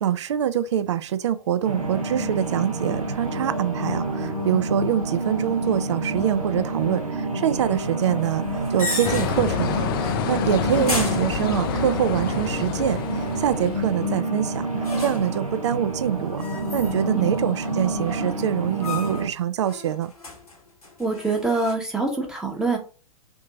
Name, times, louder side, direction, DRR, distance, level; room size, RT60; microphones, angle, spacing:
voice 1, 0.0-13.0 13.4-14.7 15.0-16.5 16.7-20.1, right 10 dB, 50° right, 0.4 m, -25 dB
sound 1, 1.6-19.3, right 2 dB, 75° right, 0.9 m, -28 dB
sound 2, 8.2-9.6 9.9-10.3 10.7-12.0 14.8-15.4 16.4-17.2 17.5-18.2 18.8-19.3 19.6-21.7, left 3 dB, 80° left, 1.3 m, -34 dB
sound 3, 9.0-14.2, left 8 dB, 40° left, 0.4 m, -28 dB
voice 2, 21.0-22.8, right 3 dB, 5° right, 0.9 m, -25 dB
3.6 x 2.7 x 3.6 m
figure-of-eight pair, 105°, 18 cm